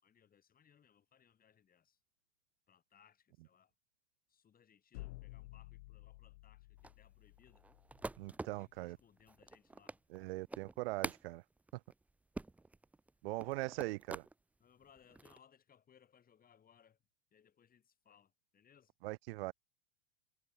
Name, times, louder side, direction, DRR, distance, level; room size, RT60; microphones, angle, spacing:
voice 1, 0.0-2.0 2.7-3.7 4.3-7.7 8.5-10.0 13.2-13.3 14.6-17.0 17.3-18.9, left 8 dB, 25° left, 5.3 m, -67 dB
sound 1, 4.9-8.8, left 20 dB, 60° left, 1.4 m, -53 dB
sound 2, 6.8-14.3 14.8-15.4, right 2 dB, 5° right, 0.5 m, -47 dB
voice 2, 8.2-9.0 10.1-11.4 13.2-14.3 19.0-19.5, right 21 dB, 55° right, 0.7 m, -41 dB
hypercardioid pair, 100°, 35 cm